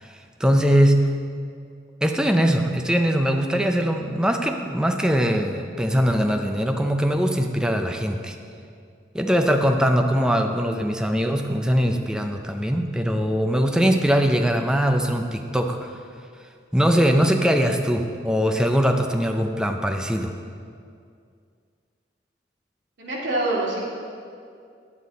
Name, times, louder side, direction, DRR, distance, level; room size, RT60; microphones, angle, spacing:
voice 1, 0.0-1.1 2.0-8.4 9.1-15.9 16.7-20.3, equal, 5° right, 4 dB, 0.4 m, -21 dB
voice 2, 23.0-23.8, right 2 dB, 80° right, -5 dB, 2.2 m, -25 dB
9.5 x 8.3 x 4.0 m, 2.3 s
head